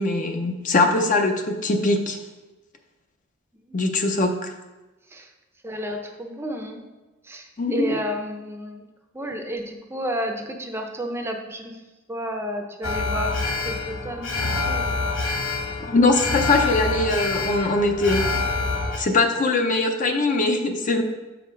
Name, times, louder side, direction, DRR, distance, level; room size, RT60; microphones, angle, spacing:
voice 1, 0.0-2.2 3.7-4.5 7.6-8.0 15.9-18.3 19.0-21.0, left 2 dB, 40° left, 5 dB, 0.6 m, -21 dB
voice 2, 3.7-4.1 5.1-5.3 5.6-6.8 7.2-8.8 9.1-11.7 12.1-15.0, equal, 15° right, 4 dB, 0.6 m, -32 dB
Alarm, 12.8-19.0, left 3 dB, 80° left, 1.2 m, -26 dB
6.7 x 5.1 x 4.5 m, 1.2 s
head